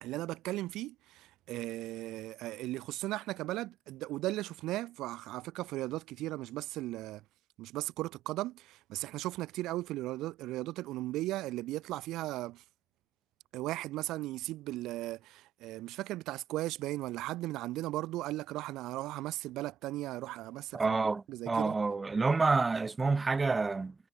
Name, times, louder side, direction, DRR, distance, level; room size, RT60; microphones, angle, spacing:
voice 1, 0.0-7.2 7.6-12.6 13.5-21.0 21.3-21.7, right 17 dB, 80° right, 2.5 m, -37 dB
voice 2, 20.7-23.9, right 4 dB, 25° right, 3.2 m, -28 dB
cardioid pair, 90°, 0 cm